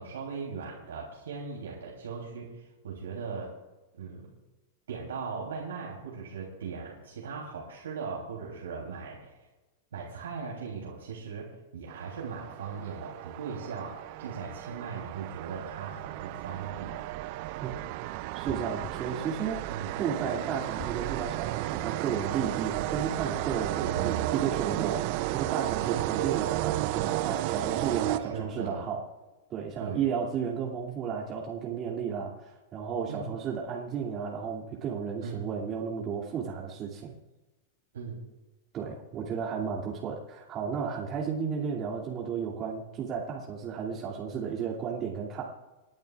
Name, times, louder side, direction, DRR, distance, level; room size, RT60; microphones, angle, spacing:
voice 1, 0.0-3.5 4.0-4.3 4.9-9.4 9.9-17.0 19.7-20.0 23.8-24.3 25.7-26.4 28.2-28.9 29.8-30.0 33.1-33.3 35.2-35.5 37.9-38.2, right 5 dB, 75° right, -2 dB, 3.3 m, -39 dB
sound 1, 11.9-28.7, right 17 dB, 55° right, 0.6 m, -33 dB
voice 2, 18.3-25.0 25.3-29.0 29.5-37.1 38.7-45.4, right 7 dB, 35° right, -4 dB, 2.6 m, -33 dB
sound 2, 18.5-19.1 20.8-21.4 23.2-23.7, left 4 dB, 30° left, 1.3 m, -44 dB
29.0 x 11.0 x 2.5 m, 1.1 s
hypercardioid pair, 100°, 0 cm